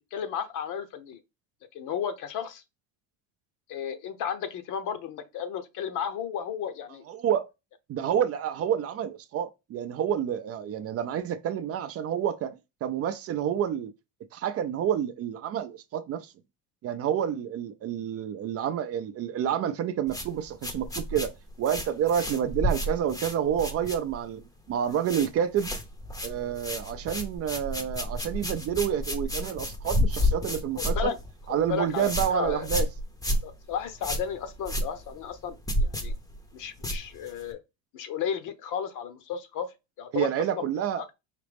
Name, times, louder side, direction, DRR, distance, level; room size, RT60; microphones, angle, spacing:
voice 1, 0.1-1.2 1.7-2.6 3.7-7.0 30.8-31.2 31.7-32.7 33.4-36.1 36.5-37.6 37.9-39.7 40.0-40.3 40.6-40.7 41.0-41.1, left 8 dB, 55° left, 0.9 m, -33 dB
voice 2, 7.1-7.5 7.9-13.9 14.3-16.3 16.8-21.3 21.6-24.4 24.7-25.7 26.2-31.1 31.5-32.9 40.1-41.0, right 9 dB, 40° right, 0.5 m, -29 dB
sound 1, 20.1-24.4 24.7-25.3 25.6-37.5, left 1 dB, 10° left, 0.7 m, -31 dB
4.9 x 3.0 x 3.4 m
supercardioid pair, 120°, 38 cm